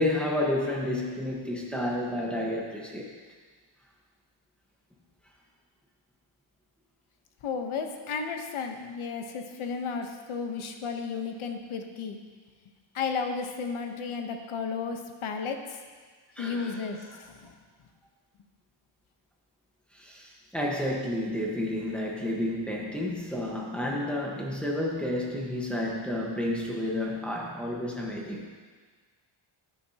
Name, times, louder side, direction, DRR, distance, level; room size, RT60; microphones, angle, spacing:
voice 1, 0.0-3.1 16.4-16.9 19.9-28.5, left 1 dB, ahead, -3 dB, 1.2 m, -30 dB
voice 2, 7.4-12.2 12.9-15.8 16.4-17.5, left 5 dB, 80° left, 5 dB, 1.0 m, -33 dB
13.0 x 9.1 x 2.9 m, 1.5 s
wide cardioid pair, 175°, 48 cm